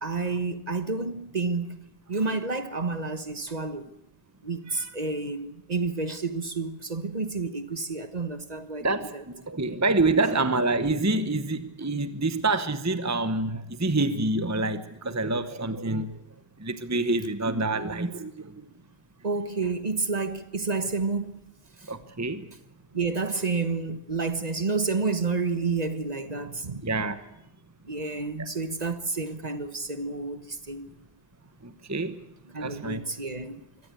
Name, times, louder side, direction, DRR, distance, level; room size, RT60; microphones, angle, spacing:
voice 1, 0.0-3.9 4.4-9.2 19.2-21.4 21.8-21.9 22.9-26.9 27.9-31.0 32.5-33.6, right 4 dB, 40° right, 1.5 m, -30 dB
voice 2, 8.8-9.1 9.5-16.1 16.6-18.5 21.9-22.5 26.8-27.2 31.6-32.2 32.6-33.0, right 2 dB, 15° right, 1.0 m, -27 dB
24.0 x 17.5 x 8.4 m
omnidirectional pair, 1.0 m